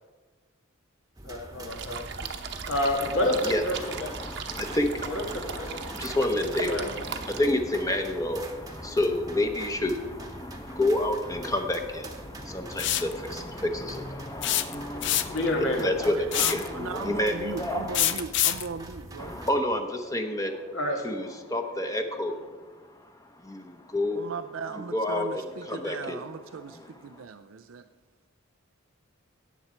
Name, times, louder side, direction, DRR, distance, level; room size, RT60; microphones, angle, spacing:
voice 1, 1.2-2.1 2.7-4.2 5.1-5.9 6.7-6.9 15.3-15.9 20.7-21.1, left 1 dB, 80° left, 1 dB, 2.0 m, -29 dB
sound 1, 1.2-19.5, right 1 dB, 20° right, 1.0 m, -44 dB
sound 2, 1.7-7.4, right 6 dB, 60° right, 0.9 m, -38 dB
voice 2, 3.3-18.2 19.2-20.7 21.0-24.3 24.9-26.2 26.7-27.2, left 1 dB, 15° left, 5 dB, 0.8 m, -30 dB
sound 3, 12.8-13.1 14.4-15.5 16.3-16.7 17.9-18.7, left 12 dB, 60° left, 0.6 m, -25 dB
voice 3, 16.0-19.4 24.1-27.9, right 5 dB, 85° right, 10 dB, 0.5 m, -38 dB
17.5 x 7.0 x 4.4 m, 1.3 s
head